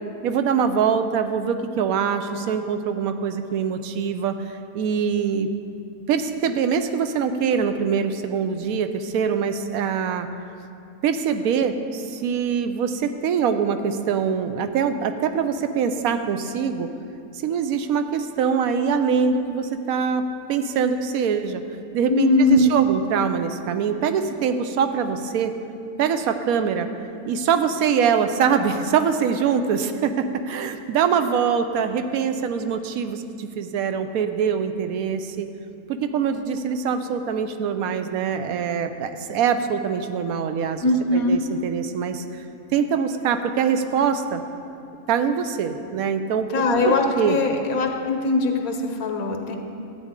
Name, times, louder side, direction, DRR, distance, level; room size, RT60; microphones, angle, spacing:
voice 1, 0.2-5.5 6.1-10.3 11.0-16.9 17.4-20.2 20.5-21.6 21.9-25.5 26.0-26.9 27.3-35.5 35.9-40.8 41.1-42.2 42.7-44.4 45.1-47.4, right 7 dB, 90° right, 8 dB, 1.1 m, -23 dB
voice 2, 22.1-22.7 40.8-41.4 46.5-49.6, left 2 dB, 85° left, 4 dB, 1.3 m, -21 dB
13.0 x 8.5 x 3.7 m, 2.5 s
omnidirectional pair, 1.5 m